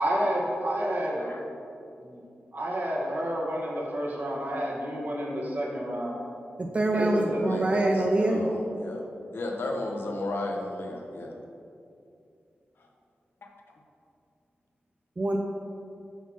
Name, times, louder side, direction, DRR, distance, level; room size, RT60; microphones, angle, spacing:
voice 1, 0.0-1.2 2.0-2.2 2.5-6.2 6.9-7.5, equal, 55° right, -3 dB, 1.6 m, -29 dB
voice 2, 6.6-8.5 15.2-15.4, right 1 dB, 30° right, 2 dB, 0.5 m, -25 dB
voice 3, 7.4-11.4 12.8-12.9 13.4-13.8, left 2 dB, 70° left, 1 dB, 1.0 m, -35 dB
8.1 x 4.1 x 6.1 m, 2.6 s
wide cardioid pair, 90°, 4 cm